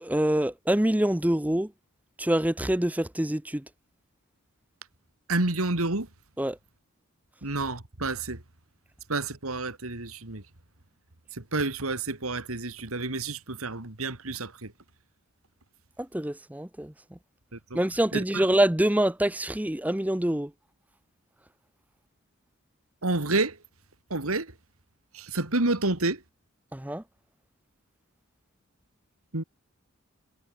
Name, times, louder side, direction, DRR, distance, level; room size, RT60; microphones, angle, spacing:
voice 1, 0.0-1.7 2.2-3.6 6.4-6.6 16.1-16.9 17.7-20.5 26.7-27.0, right 1 dB, 5° right, 0.6 m, -25 dB
voice 2, 5.3-6.1 7.4-8.4 9.1-10.4 11.4-14.7 17.5-17.8 18.1-18.5 23.0-23.6 24.1-24.5 25.1-26.2 29.3-29.4, right 2 dB, 80° right, 2.7 m, -29 dB
head